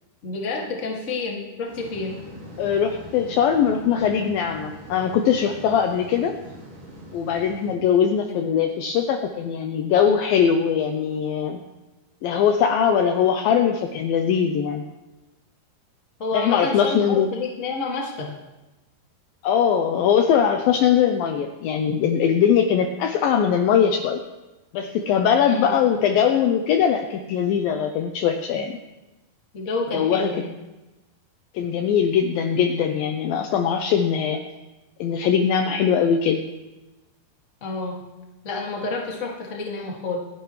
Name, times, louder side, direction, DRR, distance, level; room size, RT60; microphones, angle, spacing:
voice 1, 0.2-2.1 8.3-8.5 16.2-18.3 25.4-25.7 29.5-30.5 37.6-38.0 38.4-40.2, left 3 dB, 30° left, -1 dB, 1.5 m, -29 dB
sound 1, 1.7-7.7, equal, 45° right, 5.4 m, -42 dB
voice 2, 2.6-6.4 7.1-11.6 12.2-14.8 16.3-17.3 19.4-24.2 24.7-28.8 29.9-30.4 31.5-34.4 35.0-36.4, left 8 dB, 80° left, 5 dB, 2.2 m, -21 dB
26.5 x 10.5 x 3.2 m, 1.0 s
omnidirectional pair, 4.8 m